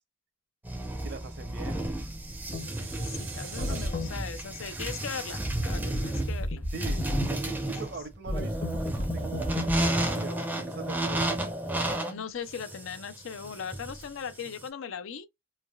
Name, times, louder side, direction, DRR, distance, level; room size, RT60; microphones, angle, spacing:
sound 1, 0.6-14.7, right 1 dB, 10° right, 0.5 m, -32 dB
voice 1, 1.0-1.8 6.7-9.5 10.0-11.4, right 4 dB, 55° right, 0.7 m, -42 dB
sound 2, 2.1-3.9, right 8 dB, 85° right, 0.8 m, -46 dB
sound 3, 2.5-2.7 3.6-4.1 5.5-7.3 8.3-9.9, left 1 dB, 35° left, 0.7 m, -32 dB
voice 2, 2.6-6.7 12.1-15.3, left 6 dB, 75° left, 0.5 m, -39 dB
3.3 x 2.2 x 2.2 m
head